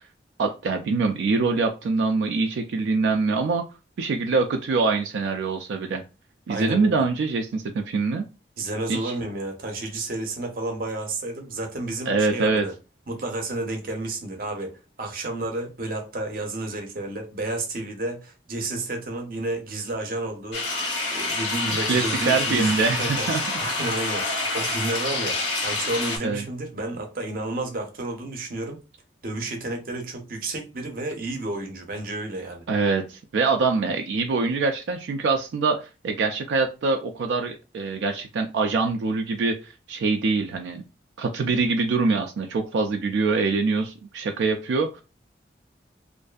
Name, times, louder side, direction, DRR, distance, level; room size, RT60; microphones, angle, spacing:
voice 1, 0.4-3.6 4.0-6.0 6.5-8.3 8.9-9.1 12.1-12.7 21.9-23.4 26.2-26.4 32.7-40.8 41.2-45.0, right 4 dB, 85° right, 0.3 m, -24 dB
voice 2, 6.5-7.0 8.6-12.7 13.1-20.8 21.1-28.8 29.2-32.6, right 2 dB, 50° right, 0.6 m, -31 dB
sound 1, 20.5-26.2, left 2 dB, 80° left, 0.9 m, -27 dB
2.5 x 2.4 x 2.3 m
head